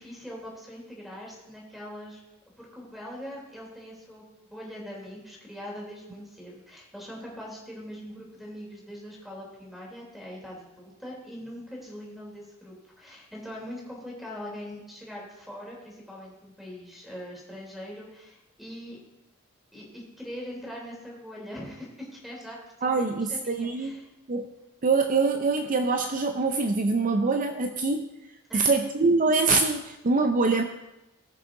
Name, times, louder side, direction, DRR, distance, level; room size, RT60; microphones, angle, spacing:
voice 1, 0.0-2.2 2.6-19.0 19.7-24.1 28.5-28.7, equal, ahead, -3 dB, 3.3 m, -42 dB
voice 2, 22.8-24.0 24.3-24.5 24.8-28.1 28.5-30.6, right 3 dB, 40° right, 6 dB, 0.5 m, -24 dB
19.5 x 6.5 x 3.8 m, 0.96 s
head